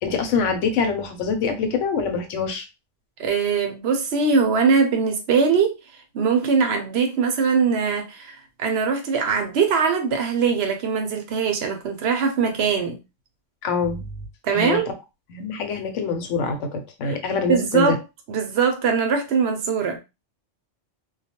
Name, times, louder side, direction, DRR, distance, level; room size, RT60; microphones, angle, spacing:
voice 1, 0.0-2.6 13.6-14.1 14.5-14.8 15.3-17.9, left 5 dB, 80° left, 1.0 m, -25 dB
voice 2, 3.2-5.8 6.1-13.0 14.4-14.9 17.1-17.2 17.5-18.0 18.3-20.0, right 5 dB, 65° right, 0.8 m, -21 dB
2.2 x 2.2 x 2.8 m
omnidirectional pair, 1.3 m